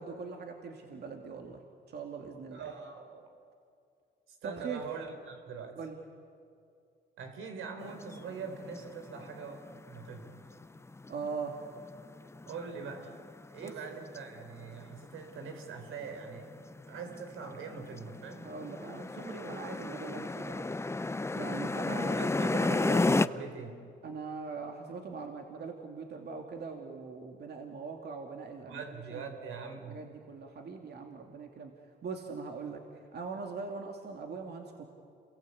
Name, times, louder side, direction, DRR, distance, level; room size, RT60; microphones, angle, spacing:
voice 1, 0.0-1.6 1.9-2.7 4.4-4.8 5.8-6.0 11.1-11.6 13.6-13.8 18.4-20.8 21.3-22.3 24.0-28.8 29.1-29.2 29.9-31.7 32.0-34.8, right 4 dB, 55° right, 2 dB, 2.6 m, -41 dB
voice 2, 2.5-3.3 4.3-5.8 7.2-10.4 12.5-13.2 13.5-16.5 16.9-18.5 22.1-23.8 28.6-30.0, right 5 dB, 85° right, 5 dB, 4.0 m, -42 dB
sound 1, 7.8-23.3, left 2 dB, 15° left, 0.7 m, -34 dB
28.0 x 22.5 x 8.5 m, 2.4 s
cardioid pair, 90°, 20 cm